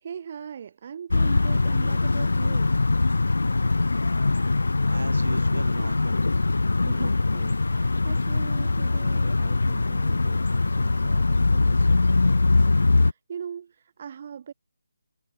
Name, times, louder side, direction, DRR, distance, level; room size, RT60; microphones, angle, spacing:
voice 1, 0.0-2.8 6.8-14.5, right 7 dB, 35° right, 1.0 m, -41 dB
sound 1, 1.1-13.1, left 3 dB, 80° left, 0.4 m, -22 dB
voice 2, 3.4-3.9 4.9-6.3, right 3 dB, 85° right, 3.5 m, -38 dB
figure-of-eight pair, 170°, 0 cm